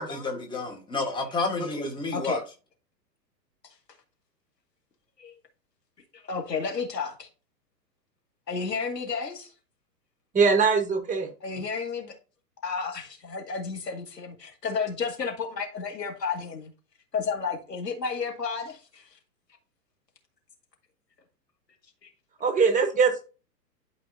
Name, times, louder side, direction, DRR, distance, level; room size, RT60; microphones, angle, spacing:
voice 1, 0.0-2.4, left 3 dB, 10° left, 1.5 m, -30 dB
voice 2, 6.1-7.3 8.5-9.5 11.4-12.1 12.6-16.7 17.1-19.2 22.0-22.1, left 5 dB, 75° left, 2.2 m, -32 dB
voice 3, 10.3-11.3 22.4-23.2, right 5 dB, 15° right, 1.2 m, -22 dB
11.5 x 4.7 x 2.7 m
figure-of-eight pair, 110°, 49 cm